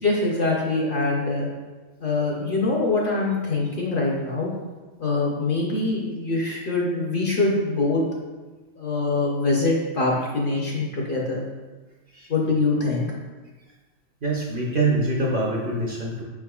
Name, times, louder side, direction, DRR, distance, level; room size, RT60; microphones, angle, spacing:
voice 1, 0.0-1.5 2.0-4.5 5.0-8.0 8.8-11.4 12.3-13.1, left 3 dB, 55° left, -2 dB, 0.7 m, -24 dB
voice 2, 14.2-16.2, right 2 dB, 55° right, -2 dB, 0.7 m, -24 dB
5.2 x 3.6 x 2.3 m, 1.3 s
omnidirectional pair, 1.3 m